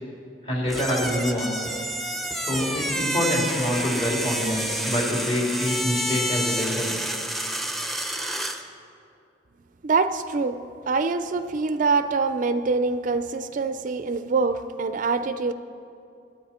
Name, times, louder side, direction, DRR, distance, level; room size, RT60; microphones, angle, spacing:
voice 1, 0.4-1.6 2.5-6.9, left 1 dB, 35° left, -2 dB, 3.0 m, -26 dB
sound 1, 0.7-8.6, right 1 dB, ahead, 0.8 m, -29 dB
voice 2, 9.8-10.6 10.9-15.5, right 4 dB, 50° right, 11 dB, 0.4 m, -24 dB
23.5 x 9.7 x 4.3 m, 2.6 s
head